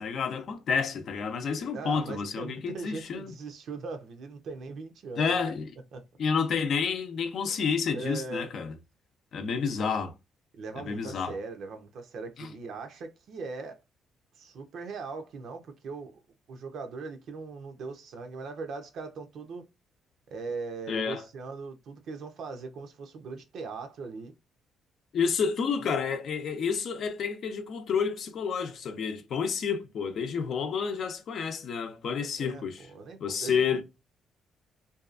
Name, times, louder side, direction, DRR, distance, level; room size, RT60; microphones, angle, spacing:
voice 1, 0.0-3.3 5.2-5.7 6.2-8.7 9.3-10.1 10.8-11.3 12.4-12.5 20.9-21.2 25.1-32.9 33.2-33.8, left 6 dB, 65° left, 0.5 m, -30 dB
voice 2, 1.7-5.4 5.9-6.0 7.9-8.6 10.5-13.8 14.4-16.2 16.5-19.7 20.3-24.3 25.8-25.9 32.4-32.6 32.9-33.8, right 4 dB, 70° right, 0.6 m, -40 dB
2.7 x 2.3 x 2.4 m
cardioid pair, 90°, 0 cm